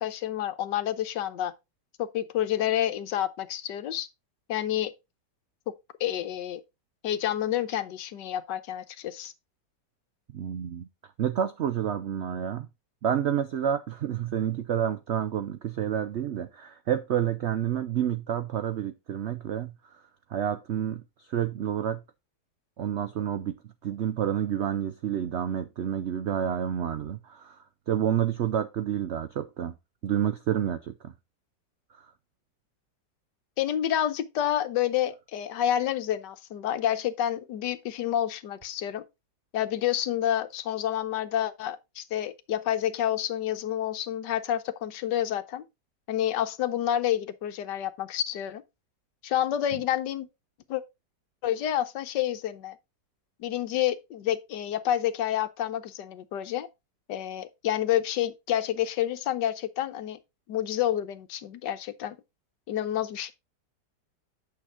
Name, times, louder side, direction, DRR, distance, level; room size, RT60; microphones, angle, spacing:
voice 1, 0.0-1.5 2.0-4.1 4.5-4.9 5.7-5.8 6.0-6.6 7.0-9.3 33.6-39.0 39.5-45.6 46.1-48.6 49.2-50.3 50.7-50.8 51.4-52.8 53.4-56.7 57.1-60.2 60.5-62.2 62.7-63.3, left 11 dB, 80° left, 1.4 m, -29 dB
voice 2, 10.3-12.7 13.0-20.0 20.3-22.0 22.8-29.7 30.0-31.1 31.9-32.1, right 9 dB, 90° right, 0.6 m, -29 dB
8.7 x 6.1 x 3.7 m
omnidirectional pair, 1.9 m